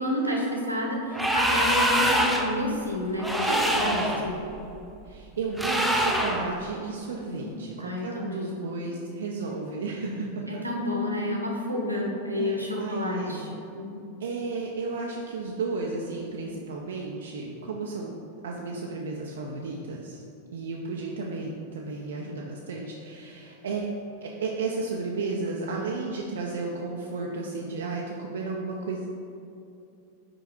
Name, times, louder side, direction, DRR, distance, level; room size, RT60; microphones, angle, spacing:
voice 1, 0.0-4.3 7.3-8.6 10.5-14.2, left 1 dB, 85° right, -1 dB, 1.0 m, -30 dB
sound 1, 1.1-2.6 3.2-4.2 5.6-6.5, equal, ahead, 0.6 m, -24 dB
voice 2, 3.8-4.2 5.0-10.6 12.4-13.4 14.2-20.2 20.5-29.1, right 3 dB, 65° right, -1 dB, 0.5 m, -33 dB
5.1 x 4.7 x 4.3 m, 2.7 s
figure-of-eight pair, 90°, 0 cm